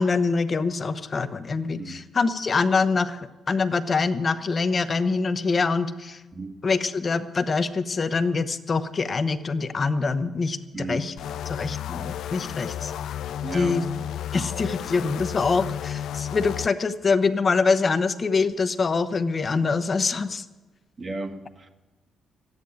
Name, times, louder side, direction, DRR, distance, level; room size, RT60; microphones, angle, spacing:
voice 1, 0.0-6.2 6.6-11.1 11.5-12.9 13.5-13.8 14.3-20.4, left 4 dB, 35° left, 11 dB, 0.9 m, -24 dB
voice 2, 10.7-11.1 13.4-13.8 19.6-19.8 21.0-21.7, right 3 dB, 35° right, 5 dB, 1.5 m, -34 dB
sound 1, 11.2-16.7, left 10 dB, 75° left, 0.4 m, -32 dB
13.5 x 9.6 x 8.5 m, 1.2 s
cardioid pair, 90°, 0 cm